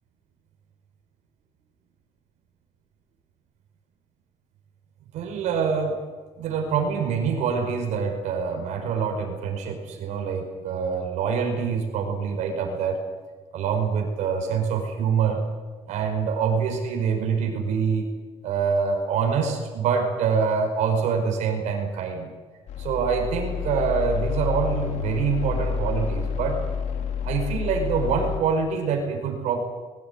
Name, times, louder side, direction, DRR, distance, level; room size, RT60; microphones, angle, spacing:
voice 1, 5.1-6.0 6.4-13.0 13.5-15.5 15.9-18.1 18.4-22.3 22.8-26.6 27.2-29.6, right 6 dB, 75° right, 4 dB, 5.2 m, -25 dB
sound 1, 22.7-28.4, left 7 dB, 70° left, 2.7 m, -29 dB
22.0 x 17.0 x 9.7 m, 1.4 s
cardioid pair, 140°, 12 cm